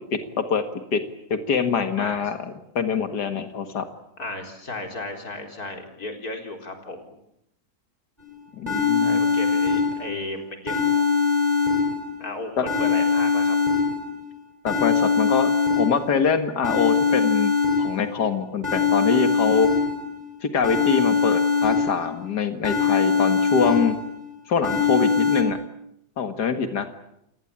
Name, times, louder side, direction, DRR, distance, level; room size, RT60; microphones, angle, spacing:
voice 1, 0.1-0.6 0.9-1.0 1.3-3.8 8.6-9.2 12.6-12.7 14.6-17.5 17.8-19.7 20.4-24.0 24.5-25.6 26.2-26.9, left 6 dB, 80° left, 8 dB, 2.3 m, -24 dB
voice 2, 4.2-7.2 9.0-11.0 12.2-13.6, left 2 dB, 65° left, 4 dB, 4.6 m, -34 dB
sound 1, 8.2-8.3 8.7-10.2 10.7-12.2 12.7-14.2 14.7-16.2 16.6-18.2 18.6-20.2 20.6-22.2 22.6-24.2 24.6-25.4, left 5 dB, 25° right, 3.6 m, -22 dB
30.0 x 18.5 x 8.8 m, 0.79 s
omnidirectional pair, 1.7 m